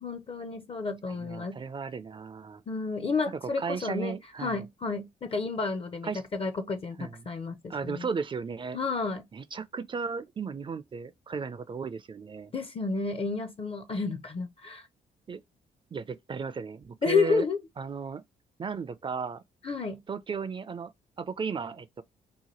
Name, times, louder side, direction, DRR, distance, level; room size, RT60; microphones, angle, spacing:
voice 1, 0.0-1.6 2.7-4.1 4.4-8.1 8.7-9.3 12.5-14.9 17.0-17.6 19.6-20.0, left 4 dB, 35° left, 0.5 m, -31 dB
voice 2, 1.1-2.6 3.6-4.7 6.0-6.2 7.0-7.3 7.7-8.8 9.3-12.5 15.3-15.4 15.9-17.5 17.8-18.2 18.6-19.4 20.1-20.9 21.2-22.0, right 5 dB, 30° right, 0.4 m, -35 dB
2.8 x 2.2 x 2.9 m
supercardioid pair, 70°, 17 cm